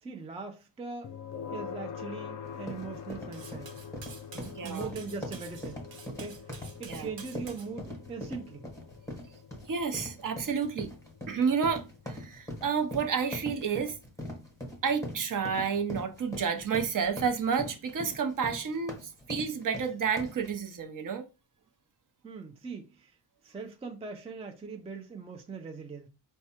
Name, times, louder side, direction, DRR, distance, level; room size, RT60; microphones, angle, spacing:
voice 1, 0.0-1.2 1.5-3.8 4.3-6.5 6.8-8.7 22.2-23.2 23.4-26.1, right 4 dB, 15° right, 0.4 m, -41 dB
sound 1, 1.0-16.0, left 7 dB, 40° left, 0.5 m, -46 dB
sound 2, 2.4-20.5, equal, 5° left, 1.0 m, -42 dB
Cutlery silverware, 3.3-7.7, right 5 dB, 75° right, 1.1 m, -49 dB
voice 2, 4.6-4.9 6.9-7.1 9.7-10.9 11.3-14.0 14.8-21.2, right 6 dB, 45° right, 0.7 m, -30 dB
4.6 x 2.2 x 4.3 m
wide cardioid pair, 165°, 44 cm